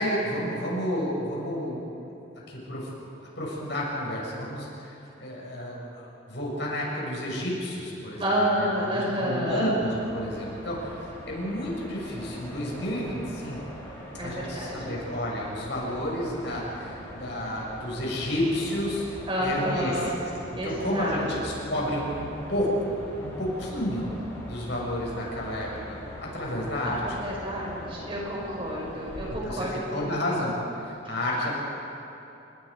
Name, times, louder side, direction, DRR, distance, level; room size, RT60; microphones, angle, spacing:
voice 1, 0.0-2.1 2.5-2.9 3.4-13.8 14.2-19.0 19.4-24.1 24.4-27.0 29.3-30.5 30.8-31.5, equal, 60° left, -3 dB, 6.6 m, -31 dB
voice 2, 8.2-9.7 14.2-14.9 19.3-20.1 20.6-21.3 26.8-30.2, equal, 25° right, -3 dB, 5.7 m, -29 dB
sound 1, 9.9-29.3, equal, 15° left, 6.6 m, -42 dB
29.5 x 21.0 x 5.2 m, 2.9 s
head